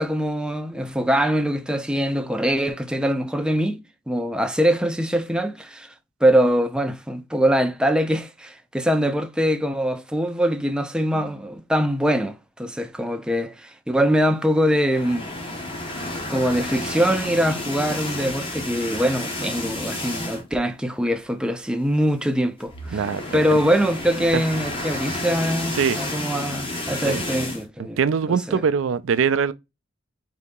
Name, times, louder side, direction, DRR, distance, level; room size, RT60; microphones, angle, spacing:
voice 1, 0.0-5.9 6.2-15.3 16.3-23.1 23.3-28.0 28.3-28.6, equal, 5° right, 0.4 m, -23 dB
sound 1, 14.8-20.6 21.0-21.2 21.4-21.5 22.6-27.6, left 2 dB, 25° left, 0.9 m, -31 dB
voice 2, 22.9-23.4 24.3-24.4 25.8-26.0 27.0-27.2 28.0-29.5, right 6 dB, 75° right, 0.4 m, -22 dB
4.0 x 2.7 x 3.6 m
head